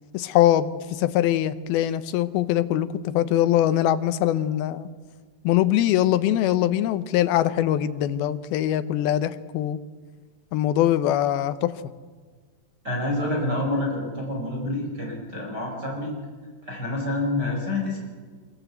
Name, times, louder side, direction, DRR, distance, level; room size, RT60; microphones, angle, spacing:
voice 1, 0.1-4.9 5.4-9.8 10.5-11.7, left 12 dB, 75° left, 12 dB, 2.7 m, -22 dB
voice 2, 12.8-16.1 16.6-18.0, left 1 dB, 25° right, -1 dB, 5.1 m, -27 dB
24.5 x 22.0 x 8.1 m, 1.5 s
omnidirectional pair, 4.6 m